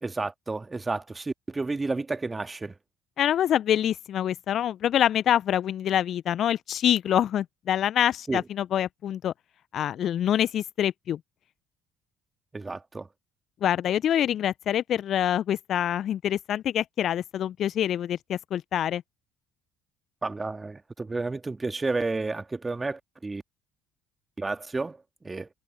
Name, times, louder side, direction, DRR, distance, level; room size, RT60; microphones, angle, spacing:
voice 1, 0.0-2.8 8.3-8.4 12.5-13.1 20.2-23.4 24.4-25.5, right 3 dB, 20° right, 2.4 m, -31 dB
voice 2, 3.2-9.3 9.7-11.2 13.6-19.0, left 10 dB, 50° left, 0.9 m, -25 dB
figure-of-eight pair, 55°, 0 cm